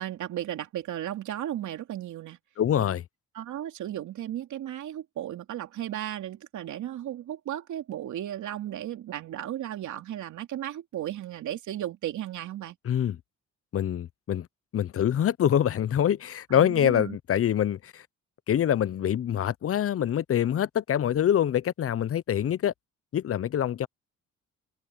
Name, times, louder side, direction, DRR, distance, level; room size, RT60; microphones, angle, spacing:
voice 1, 0.0-2.4 3.3-12.8 16.5-17.2, right 12 dB, 75° right, 2.9 m, -35 dB
voice 2, 2.6-3.0 12.8-13.2 13.7-14.5 14.7-18.0 18.5-22.7 23.1-23.9, left 10 dB, 50° left, 0.8 m, -25 dB
cardioid pair, 90°, 30 cm